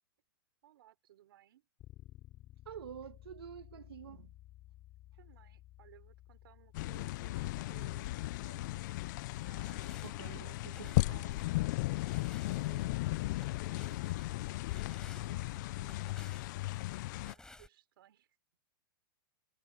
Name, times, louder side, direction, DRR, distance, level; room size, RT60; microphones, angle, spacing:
voice 1, 0.6-1.7 5.2-8.9 9.3-11.7 12.2-16.1 17.0-18.3, right 13 dB, 70° right, 5.9 m, -61 dB
Bass guitar, 1.8-8.0, left 15 dB, 30° left, 6.3 m, -56 dB
voice 2, 2.6-4.3 10.0-11.4, right 9 dB, 90° right, 1.7 m, -48 dB
sound 1, 6.7-17.3, left 19 dB, 50° left, 0.6 m, -36 dB
sound 2, 9.2-17.7, left 2 dB, 5° left, 5.9 m, -59 dB
hypercardioid pair, 140°, 12 cm